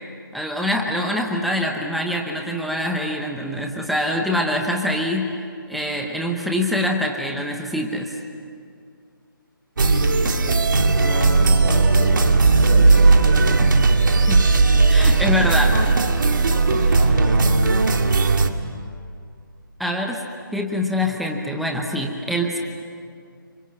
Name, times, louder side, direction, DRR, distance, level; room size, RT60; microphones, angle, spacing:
voice 1, 0.3-5.3 5.7-8.1 13.6-13.7 14.3-14.4 14.9-15.7 19.8-20.2 20.5-22.6, left 1 dB, ahead, 1 dB, 0.8 m, -24 dB
voice 2, 9.8-13.6 14.2-15.7 16.5-17.5, left 1 dB, 30° left, -1 dB, 6.2 m, -31 dB
sound 1, 9.8-18.5, right 3 dB, 60° right, 2.2 m, -17 dB
29.5 x 25.5 x 7.6 m, 2.3 s
hypercardioid pair, 170°, 12 cm